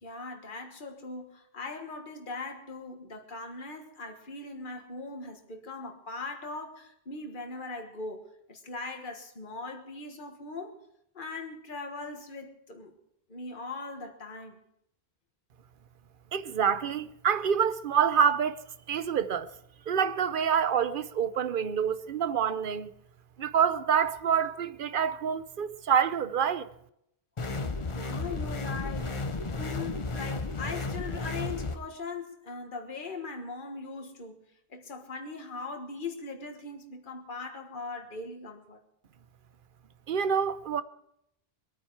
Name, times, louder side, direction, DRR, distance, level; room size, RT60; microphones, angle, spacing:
voice 1, 0.0-10.8 11.1-12.9 13.3-14.6 27.9-29.2 29.6-34.4 34.7-38.8, left 3 dB, 55° left, 1.7 m, -40 dB
voice 2, 16.3-18.6 18.9-19.5 19.9-22.9 23.4-26.7 40.1-40.8, right 7 dB, 60° right, 0.9 m, -27 dB
sound 1, 27.4-31.8, left 3 dB, 30° left, 0.9 m, -33 dB
24.0 x 9.4 x 4.6 m
omnidirectional pair, 1.0 m